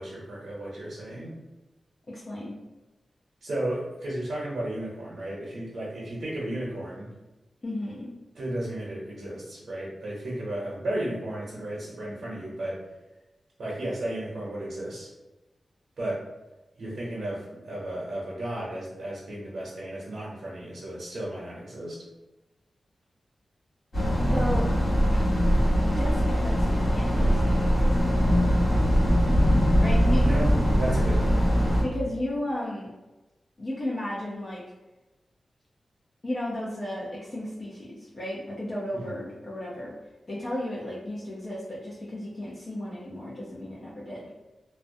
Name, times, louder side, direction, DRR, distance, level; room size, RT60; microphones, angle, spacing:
voice 1, 0.0-1.3 3.4-7.1 8.3-12.8 13.6-15.1 16.0-16.3 16.8-22.0 30.1-31.5 38.9-39.2, right 1 dB, 75° right, -7 dB, 0.6 m, -34 dB
voice 2, 2.1-2.6 7.6-8.1 24.3-24.7 25.1-25.2 25.5-29.0 29.8-30.4 31.8-32.9 33.6-34.6 36.2-39.9 40.3-44.3, left 1 dB, 45° left, -6 dB, 0.5 m, -34 dB
sound 1, 23.9-31.8, equal, 60° left, 1.0 m, -22 dB
2.3 x 2.1 x 2.6 m, 1.1 s
wide cardioid pair, 105°, 0 cm